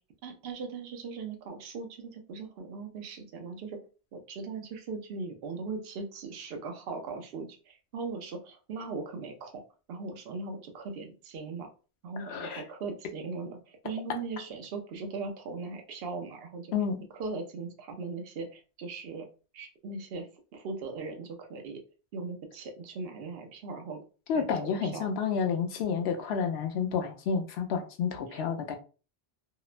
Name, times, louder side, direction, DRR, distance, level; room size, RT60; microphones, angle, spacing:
voice 1, 0.2-3.8 4.1-9.6 9.9-11.7 12.0-16.7 17.1-19.3 19.5-21.8 22.1-24.0 24.3-25.1 28.3-28.4, right 4 dB, 65° right, 4 dB, 0.8 m, -39 dB
voice 2, 12.3-12.6 16.7-17.0 24.3-28.8, left 6 dB, 70° left, 5 dB, 0.8 m, -30 dB
2.8 x 2.1 x 2.4 m, 0.35 s
omnidirectional pair, 1.1 m